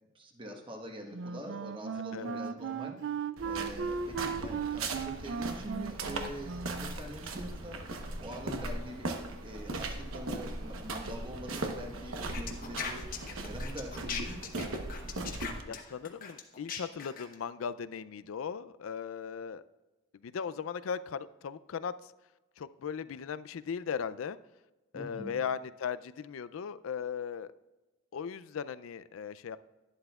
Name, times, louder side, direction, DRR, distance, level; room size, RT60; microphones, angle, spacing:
voice 1, 0.1-3.0 3.4-7.8 8.2-9.2 9.4-13.1 13.4-14.4 24.9-25.4, equal, 25° right, 2 dB, 1.2 m, -44 dB
Wind instrument woodwind instrument, 1.1-7.0, right 6 dB, 60° right, 0.3 m, -37 dB
sound 1, 3.4-15.6, right 2 dB, 90° right, 1.0 m, -38 dB
sound 2, 12.3-17.3, left 6 dB, 45° left, 0.9 m, -39 dB
voice 2, 15.7-19.6 20.2-21.9 22.6-24.4 24.9-27.5 28.1-29.6, left 7 dB, 85° left, 15 dB, 0.4 m, -38 dB
11.5 x 11.0 x 2.3 m, 1.1 s
head